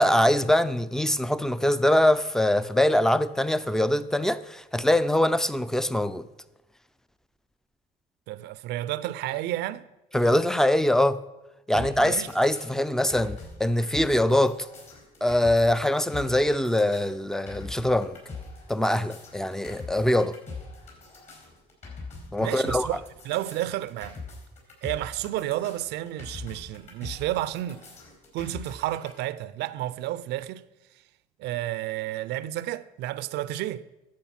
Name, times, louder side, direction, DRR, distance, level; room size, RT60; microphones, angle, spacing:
voice 1, 0.0-6.3 10.1-11.2 11.7-14.6 15.2-18.2 18.7-20.4 22.3-22.9, left 1 dB, 5° left, 0.4 m, -23 dB
voice 2, 8.3-9.8 11.7-12.3 22.4-24.2 24.8-27.8 28.3-30.6 31.4-33.8, right 14 dB, 80° right, 0.5 m, -31 dB
sound 1, 11.7-29.1, left 3 dB, 45° left, 4.9 m, -42 dB
11.5 x 7.7 x 5.8 m
cardioid pair, 110°, 17 cm